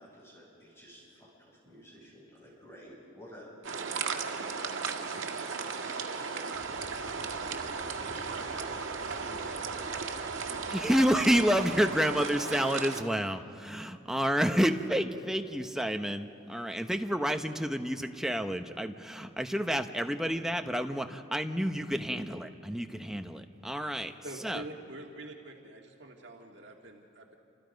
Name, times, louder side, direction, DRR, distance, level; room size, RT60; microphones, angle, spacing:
voice 1, 0.0-6.4 7.1-7.5 7.9-8.8 9.1-10.9, equal, 15° left, -4 dB, 7.1 m, -52 dB
sound 1, 3.6-13.0, right 5 dB, 80° right, 1.7 m, -36 dB
sound 2, 6.5-11.8, left 1 dB, 45° left, 5.2 m, -52 dB
voice 2, 10.7-24.1 24.4-24.6, equal, 5° right, 5 dB, 0.9 m, -29 dB
voice 3, 24.2-27.3, right 2 dB, 65° right, 1 dB, 1.8 m, -45 dB
29.5 x 27.5 x 5.3 m, 2.6 s
head